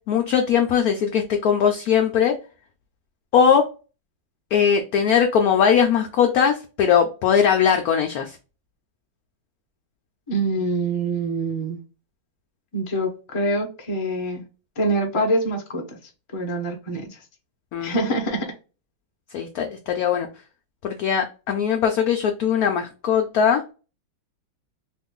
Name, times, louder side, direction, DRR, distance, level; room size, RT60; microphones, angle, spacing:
voice 1, 0.1-2.3 3.3-3.7 4.5-8.4 17.7-18.0 19.3-20.3 20.8-23.6, left 7 dB, 75° left, 0.8 m, -20 dB
voice 2, 10.3-11.8 12.7-14.4 14.8-16.0 16.3-17.2 17.8-18.5, right 1 dB, 45° left, 0.4 m, -25 dB
3.0 x 2.5 x 3.5 m
omnidirectional pair, 2.1 m